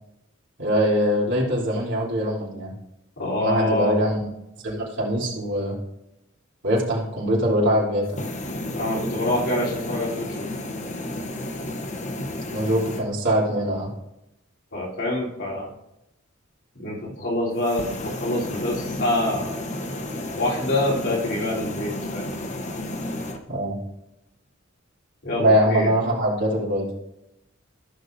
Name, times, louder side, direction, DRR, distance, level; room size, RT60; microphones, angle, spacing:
voice 1, 0.6-2.7 3.4-4.2 4.6-5.8 6.6-8.1 12.5-13.9 23.5-23.8 25.4-26.9, equal, 60° right, -5 dB, 3.3 m, -22 dB
voice 2, 3.2-3.9 8.7-10.5 14.7-15.7 16.7-19.6 20.3-22.3 23.1-23.2 23.5-23.6 25.2-25.9, left 1 dB, 60° left, -5 dB, 3.5 m, -26 dB
sound 1, 8.0-13.0 17.6-23.4, left 1 dB, 35° left, 0.9 m, -32 dB
15.0 x 6.4 x 2.6 m, 0.85 s
head